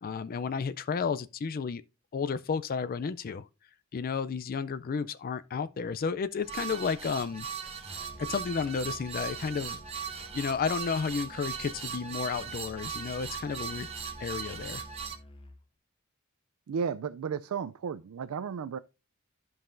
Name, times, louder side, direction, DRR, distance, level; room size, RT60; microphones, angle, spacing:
voice 1, 0.0-1.8 2.1-3.5 3.9-7.5 8.2-13.9 14.2-14.8, left 5 dB, 40° left, 0.4 m, -32 dB
sound 1, 6.4-15.2, right 7 dB, 30° right, 1.1 m, -39 dB
Musical instrument, 7.8-15.6, left 1 dB, 25° left, 0.8 m, -51 dB
voice 2, 16.7-18.8, right 6 dB, 75° right, 0.4 m, -33 dB
12.5 x 5.5 x 2.5 m
head